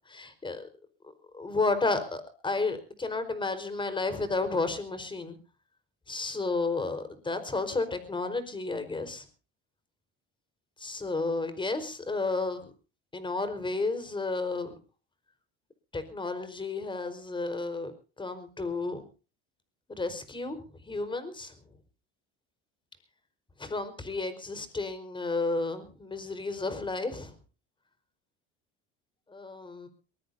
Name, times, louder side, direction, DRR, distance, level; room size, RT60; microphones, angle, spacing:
voice 1, 0.1-0.7 1.3-5.4 6.1-9.2 10.8-12.7 13.1-14.7 15.9-17.9 18.2-19.0 19.9-21.5 23.6-27.3 29.3-29.9, left 3 dB, 15° left, 10 dB, 4.6 m, -32 dB
22.5 x 21.5 x 2.8 m, 0.37 s
cardioid pair, 115°, 29 cm